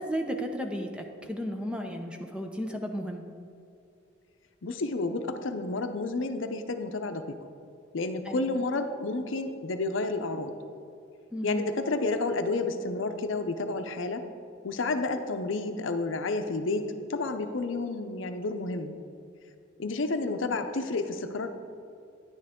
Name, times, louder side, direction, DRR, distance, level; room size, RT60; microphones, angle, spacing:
voice 1, 0.0-3.3 8.3-8.5 11.3-11.6, equal, 5° right, 3 dB, 0.6 m, -34 dB
voice 2, 4.6-7.4 7.9-10.5 11.4-14.2 14.6-18.9 19.8-21.5, left 3 dB, 75° left, 7 dB, 0.6 m, -30 dB
10.0 x 9.1 x 3.6 m, 2.5 s
head